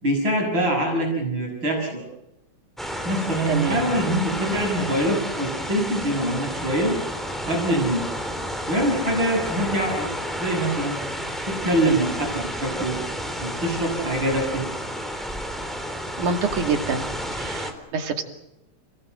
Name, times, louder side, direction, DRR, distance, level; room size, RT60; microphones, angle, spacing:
voice 1, 0.0-2.0 3.0-6.9 7.4-8.0 8.7-10.1 10.4-11.0 11.5-13.0 13.4-14.7, right 1 dB, 35° right, -1 dB, 7.1 m, -24 dB
sound 1, 2.8-17.7, equal, ahead, 3.3 m, -31 dB
voice 2, 3.5-3.8 16.2-17.1 17.4-18.2, right 5 dB, 80° right, 5 dB, 3.9 m, -26 dB
30.0 x 19.0 x 7.9 m, 0.89 s
omnidirectional pair, 3.5 m